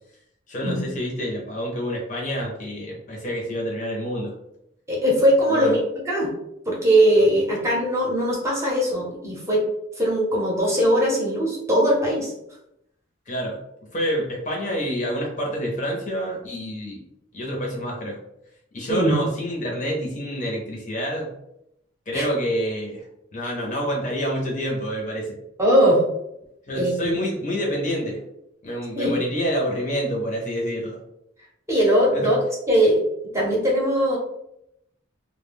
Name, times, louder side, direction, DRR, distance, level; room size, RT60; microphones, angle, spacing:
voice 1, 0.5-4.4 5.5-5.7 13.3-13.6 13.9-17.0 17.3-18.2 18.7-21.3 22.1-23.1 23.3-25.4 26.7-28.2 28.6-31.0 32.1-32.3, equal, 40° left, -1 dB, 0.7 m, -27 dB
voice 2, 4.9-6.3 6.7-9.6 10.0-12.3 18.9-19.1 22.1-22.3 25.6-26.0 26.7-27.2 29.0-29.1 31.7-33.0 33.3-34.2, equal, 15° right, -4 dB, 0.8 m, -20 dB
2.2 x 2.2 x 3.4 m, 0.80 s
head